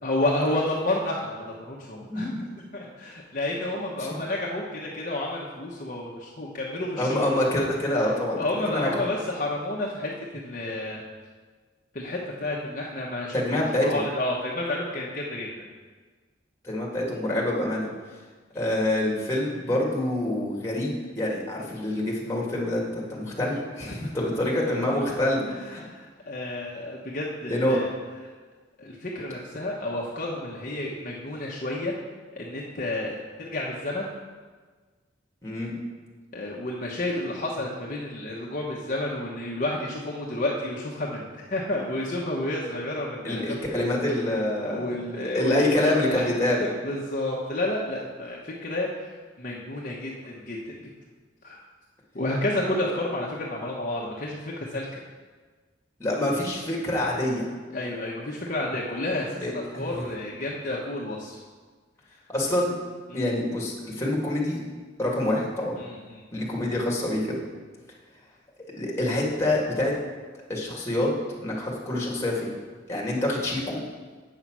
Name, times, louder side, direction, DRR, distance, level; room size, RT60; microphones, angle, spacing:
voice 1, 0.0-2.3 2.7-7.2 8.0-11.0 11.9-15.7 24.2-24.3 25.0-25.1 25.5-27.9 28.8-31.9 32.3-34.1 36.3-43.8 44.7-46.2 46.6-50.9 51.4-51.6 52.1-55.0 57.7-61.4 63.1-63.4 65.8-66.3, left 1 dB, 45° left, -3 dB, 1.0 m, -31 dB
voice 2, 2.1-2.4 7.0-8.4 8.7-9.1 13.3-14.0 16.6-17.9 18.5-25.8 27.5-27.8 35.4-35.7 43.2-44.8 45.3-46.6 56.0-57.5 59.4-60.0 62.3-62.7 63.1-64.6 65.0-65.7 66.3-67.4 68.8-69.9 70.5-71.1 71.4-72.5 72.9-73.8, left 1 dB, 15° left, -3 dB, 1.9 m, -26 dB
8.3 x 5.6 x 6.1 m, 1.4 s
head